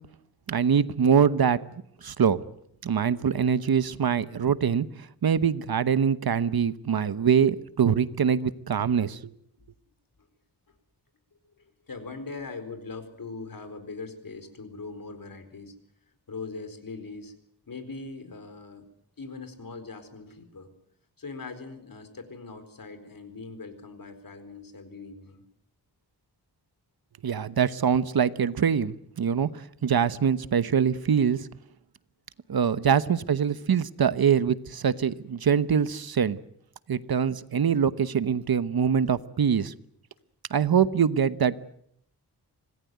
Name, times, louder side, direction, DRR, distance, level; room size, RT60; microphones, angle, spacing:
voice 1, 0.5-1.6 2.0-2.4 2.8-4.9 5.2-9.3 27.2-31.5 32.5-36.4 36.9-39.7 40.5-41.6, right 7 dB, 60° right, 15 dB, 1.1 m, -24 dB
voice 2, 11.6-15.7 16.3-17.3 17.7-18.8 19.2-20.7 21.2-25.4 31.0-31.1 32.8-32.9 33.4-33.8, left 4 dB, 55° left, 9 dB, 4.4 m, -41 dB
26.0 x 18.5 x 9.3 m, 0.72 s
wide cardioid pair, 115°, 40 cm